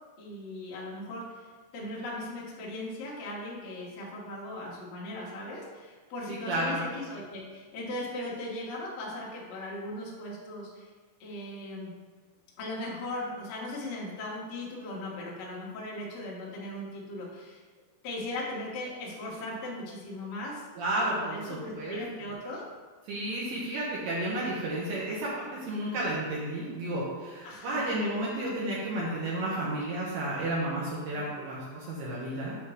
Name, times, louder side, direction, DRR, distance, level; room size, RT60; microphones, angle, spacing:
voice 1, 0.2-1.5 1.7-10.9 11.2-11.9 12.6-17.6 18.0-20.6 20.9-22.6 27.4-27.9 31.1-31.3, left 1 dB, 75° left, -5 dB, 1.5 m, -38 dB
voice 2, 6.3-6.8 20.8-22.0 23.1-32.6, right 1 dB, 70° right, -5 dB, 2.5 m, -32 dB
9.1 x 3.1 x 6.3 m, 1.4 s
omnidirectional pair, 5.6 m